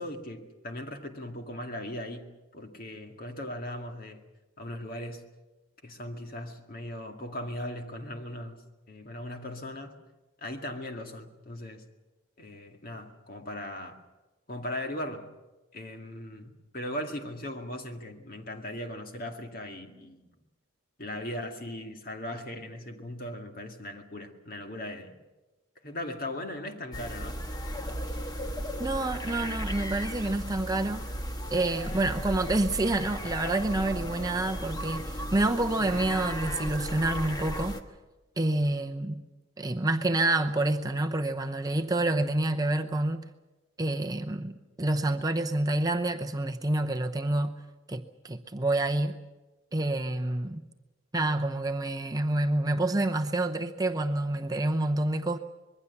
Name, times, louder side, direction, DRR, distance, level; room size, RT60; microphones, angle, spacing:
voice 1, 0.0-4.2 4.6-5.3 5.8-10.0 10.4-11.9 12.4-14.0 14.5-15.3 15.7-20.3 21.0-25.2 25.8-27.4, left 1 dB, 45° left, 2.1 m, -38 dB
sound 1, 26.9-37.8, equal, 20° left, 1.3 m, -35 dB
voice 2, 28.8-31.1 31.5-37.8 38.4-39.2 39.6-43.3 43.8-47.6 47.9-49.2 49.7-50.6 51.1-55.4, right 2 dB, 20° right, 0.7 m, -28 dB
25.5 x 21.5 x 7.1 m
head